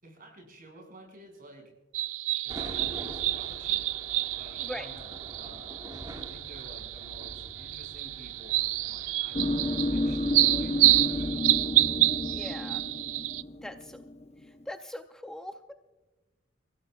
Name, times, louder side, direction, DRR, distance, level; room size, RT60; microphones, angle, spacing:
voice 1, 0.0-1.7 2.4-11.7, right 1 dB, 45° right, 1 dB, 5.5 m, -51 dB
sound 1, 1.9-13.4, right 16 dB, 80° right, 0.4 m, -28 dB
sound 2, 2.5-11.3, right 1 dB, 20° right, 1.8 m, -46 dB
sound 3, 9.3-14.6, left 1 dB, 35° left, 0.7 m, -31 dB
voice 2, 12.3-12.8 13.6-14.0 14.7-15.7, left 1 dB, 5° left, 6 dB, 0.5 m, -40 dB
29.0 x 16.0 x 2.3 m, 1.2 s
head